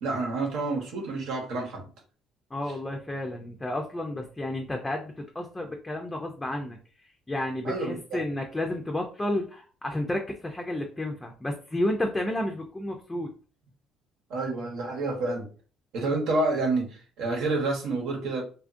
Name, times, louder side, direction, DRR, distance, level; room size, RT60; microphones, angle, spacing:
voice 1, 0.0-1.9 7.6-8.2 14.3-15.5 15.9-18.4, right 3 dB, 80° right, 0 dB, 1.0 m, -29 dB
voice 2, 2.5-13.3, left 1 dB, 15° left, 2 dB, 0.4 m, -31 dB
2.8 x 2.4 x 2.5 m, 0.38 s
cardioid pair, 100°, 0 cm